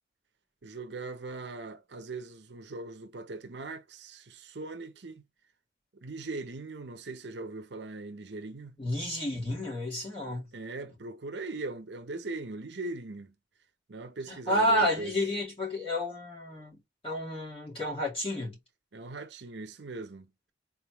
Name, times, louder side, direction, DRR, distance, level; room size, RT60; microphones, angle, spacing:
voice 1, 0.6-5.2 5.9-8.8 10.5-13.3 13.9-15.1 18.9-20.3, right 3 dB, 70° right, 0.7 m, -40 dB
voice 2, 8.8-10.5 14.3-18.6, equal, 30° left, 2.5 m, -30 dB
4.1 x 3.6 x 3.0 m
head